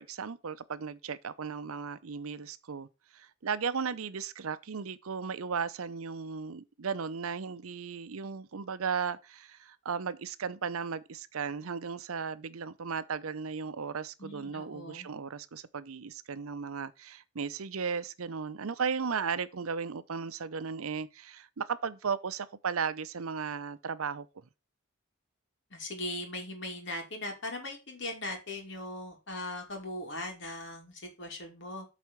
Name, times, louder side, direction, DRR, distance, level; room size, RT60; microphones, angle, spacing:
voice 1, 0.0-2.9 3.1-24.3, right 6 dB, 80° right, 0.6 m, -35 dB
voice 2, 14.2-15.1 25.7-31.9, left 1 dB, 55° left, 2.5 m, -39 dB
8.2 x 4.2 x 6.0 m
head